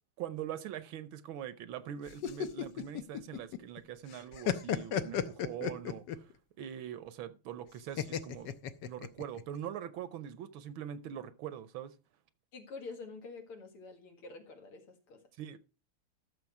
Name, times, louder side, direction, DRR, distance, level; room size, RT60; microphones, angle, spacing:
voice 1, 0.2-6.2 6.6-8.5 8.9-11.9 15.4-15.6, right 10 dB, 70° right, 1.5 m, -42 dB
sound 1, 2.1-3.8 4.1-6.3 8.0-9.4, left 9 dB, 65° left, 1.2 m, -34 dB
voice 2, 12.5-15.2, left 4 dB, 85° left, 2.8 m, -47 dB
13.0 x 6.7 x 4.7 m
omnidirectional pair, 2.4 m